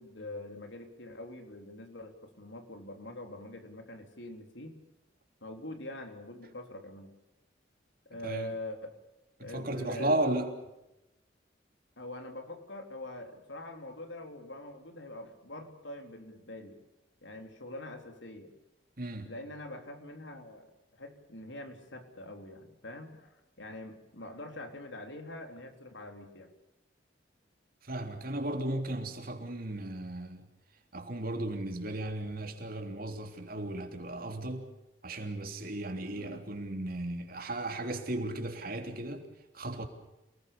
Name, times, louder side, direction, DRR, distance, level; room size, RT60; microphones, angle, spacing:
voice 1, 0.0-4.8 5.4-7.1 8.1-8.9 9.4-10.2 12.0-16.8 17.2-18.5 19.2-26.5 36.1-36.4, left 1 dB, 80° left, 3.7 m, -44 dB
voice 2, 9.4-10.5 19.0-19.3 27.8-30.5 30.9-34.7 35.0-39.2 39.5-39.8, right 1 dB, 50° right, 3.4 m, -35 dB
28.5 x 19.5 x 7.0 m
head